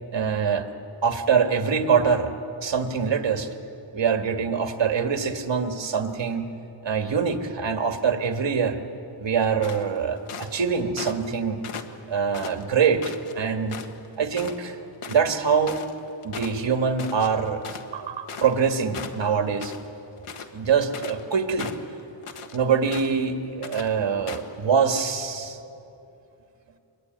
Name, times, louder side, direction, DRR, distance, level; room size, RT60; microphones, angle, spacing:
voice 1, 0.1-0.7 1.0-2.3 2.6-3.5 3.9-6.5 6.8-8.8 9.2-11.6 12.1-13.8 14.2-14.8 15.1-15.8 16.2-17.6 17.9-19.7 20.5-21.7 22.5-25.6, right 6 dB, 60° right, 6 dB, 1.9 m, -24 dB
sound 1, 9.6-10.6 11.0-11.3 11.6-13.3 13.7-14.1 14.3-14.6 14.8-18.7 18.9-19.9 20.2-21.2 21.6-22.6 22.9-23.3 23.6-23.9 24.3-24.5, left 5 dB, 85° left, 1.6 m, -38 dB
23.5 x 21.5 x 9.3 m, 2.8 s
wide cardioid pair, 125°, 50 cm